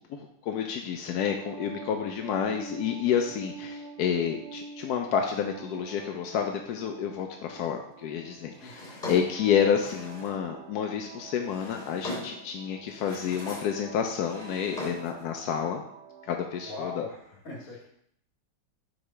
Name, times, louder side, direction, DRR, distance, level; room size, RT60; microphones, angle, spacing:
voice 1, 0.0-15.8 16.2-17.0, left 8 dB, 70° left, 3 dB, 0.9 m, -29 dB
sound 1, 1.0-17.0, right 5 dB, 80° right, 0.6 m, -47 dB
voice 2, 8.6-8.9 16.6-17.9, left 3 dB, 50° left, -3 dB, 2.2 m, -41 dB
Drawer open or close, 8.6-10.4 11.2-12.5 12.9-13.8 14.1-15.2, left 2 dB, 25° left, 2.9 m, -40 dB
4.8 x 4.2 x 5.5 m, 0.69 s
omnidirectional pair, 2.0 m